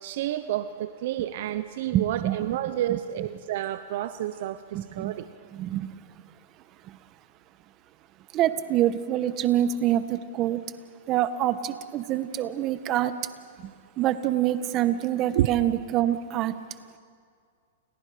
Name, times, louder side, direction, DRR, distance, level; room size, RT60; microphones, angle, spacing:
voice 1, 0.0-5.2 15.3-15.5, right 13 dB, 60° right, 11 dB, 1.0 m, -29 dB
voice 2, 1.9-2.4 2.9-3.0 4.7-5.1 5.5-5.9 6.8-7.0 8.3-10.7 11.1-13.2 14.0-16.5, right 12 dB, 35° right, 11 dB, 1.5 m, -26 dB
30.0 x 30.0 x 5.2 m, 2.2 s
hypercardioid pair, 125°, 0 cm